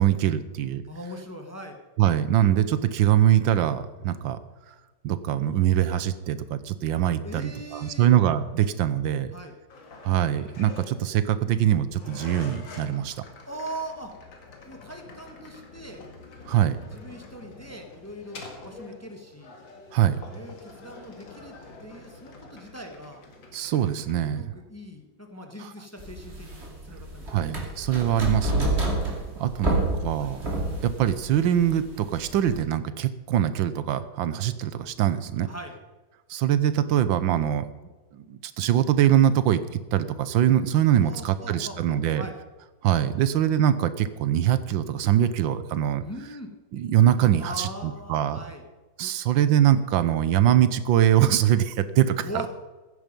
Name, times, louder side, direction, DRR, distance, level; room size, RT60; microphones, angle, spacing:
voice 1, 0.0-0.8 2.0-4.4 5.0-9.3 10.0-13.1 16.5-16.8 19.9-20.2 23.5-24.4 27.3-28.8 29.4-30.4 30.8-35.5 36.3-37.7 38.1-39.6 39.9-42.2 42.8-46.0 46.7-48.4 49.0-52.2, right 11 dB, 85° right, 13 dB, 1.6 m, -23 dB
voice 2, 0.9-1.8 7.2-8.1 9.3-9.5 13.5-14.1 14.6-16.0 16.8-19.6 20.3-23.2 24.3-26.6 26.8-27.4 29.4-30.4 35.4-35.8 41.0-42.4 46.0-46.5 47.2-48.6 52.2-52.5, right 1 dB, 10° left, 4 dB, 1.2 m, -40 dB
sound 1, 9.7-24.2, left 3 dB, 85° left, 2.7 m, -46 dB
sound 2, 26.0-32.6, right 1 dB, 35° right, 2.9 m, -29 dB
15.0 x 10.0 x 5.3 m, 1.2 s
omnidirectional pair, 2.0 m